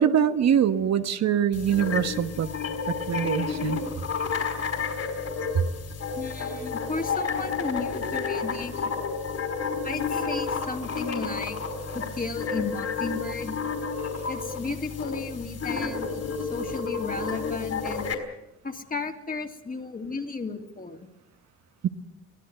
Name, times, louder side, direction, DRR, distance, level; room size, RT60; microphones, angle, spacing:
voice 1, 0.0-2.5 3.1-3.8 21.8-21.9, right 9 dB, 60° right, 9 dB, 1.3 m, -23 dB
sound 1, 1.5-18.1, left 5 dB, 55° left, 5.0 m, -31 dB
voice 2, 6.2-8.9 9.8-11.6 11.9-13.6 14.3-18.1 18.6-21.1, left 4 dB, 30° left, 4 dB, 2.7 m, -34 dB
24.5 x 16.5 x 7.8 m, 0.93 s
cardioid pair, 90°, 30 cm